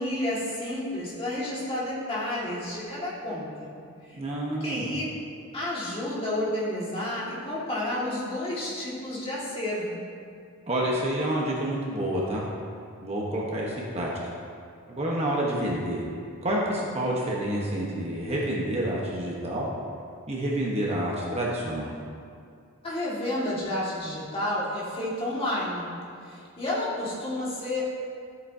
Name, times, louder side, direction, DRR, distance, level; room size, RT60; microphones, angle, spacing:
voice 1, 0.0-3.7 4.0-4.2 4.5-5.0 5.5-10.0 22.8-25.9 26.2-27.9, left 1 dB, 25° left, -7 dB, 2.0 m, -31 dB
voice 2, 4.1-4.9 10.7-12.4 13.0-14.1 14.9-16.0 16.4-19.7 20.3-21.9, right 1 dB, 30° right, -4 dB, 1.1 m, -28 dB
13.0 x 8.1 x 2.8 m, 2.3 s
head